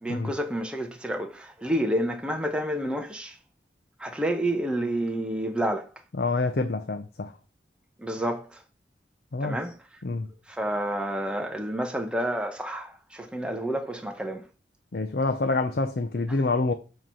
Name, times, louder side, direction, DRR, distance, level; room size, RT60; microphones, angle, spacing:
voice 1, 0.0-3.3 4.0-5.9 8.0-8.5 9.4-9.8 10.5-14.4, right 1 dB, 5° right, 0.7 m, -29 dB
voice 2, 6.1-7.3 9.3-9.6 10.0-10.3 14.9-16.7, left 3 dB, 60° left, 0.5 m, -27 dB
7.5 x 3.1 x 5.5 m
head